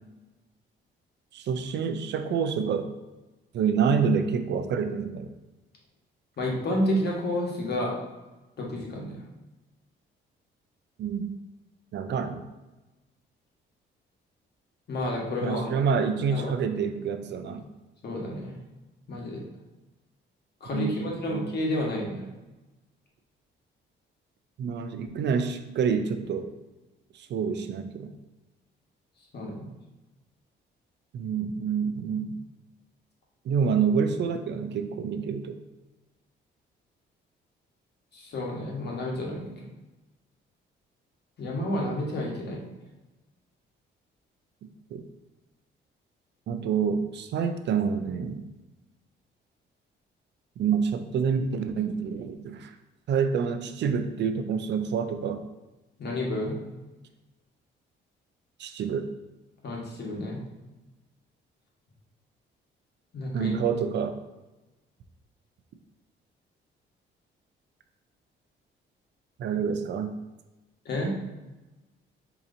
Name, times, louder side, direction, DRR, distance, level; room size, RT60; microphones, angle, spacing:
voice 1, 1.3-2.9 3.5-5.3 11.0-11.3 11.9-12.4 15.4-17.6 20.7-21.5 24.6-26.5 27.1-28.1 31.1-32.4 33.5-35.6 44.9-45.0 46.5-48.4 50.6-52.7 53.1-55.4 58.6-59.1 63.3-64.1 69.4-70.1, right 6 dB, 60° right, 8 dB, 0.4 m, -27 dB
voice 2, 6.4-7.9 8.6-9.2 14.9-15.9 16.3-16.5 18.0-18.5 19.1-19.4 20.6-22.2 29.3-29.7 38.1-39.5 41.4-42.6 56.0-56.5 59.6-60.4 63.1-63.5 70.8-71.1, left 1 dB, 55° left, -2 dB, 1.2 m, -30 dB
4.9 x 2.9 x 2.6 m, 1.1 s
cardioid pair, 90°, 20 cm